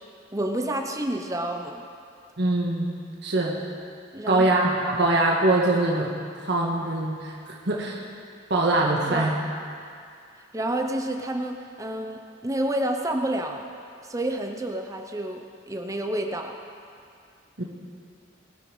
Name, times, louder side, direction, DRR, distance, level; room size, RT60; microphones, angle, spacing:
voice 1, 0.3-1.8 4.1-4.4 9.1-9.3 10.5-13.6 14.0-16.5, right 1 dB, 15° right, 3 dB, 0.8 m, -29 dB
voice 2, 2.4-2.9 3.2-3.6 4.3-6.1 6.5-7.3 7.7-8.0 8.5-9.3 17.6-17.7, right 2 dB, 60° right, -2 dB, 1.6 m, -22 dB
21.0 x 8.2 x 5.5 m, 2.3 s
head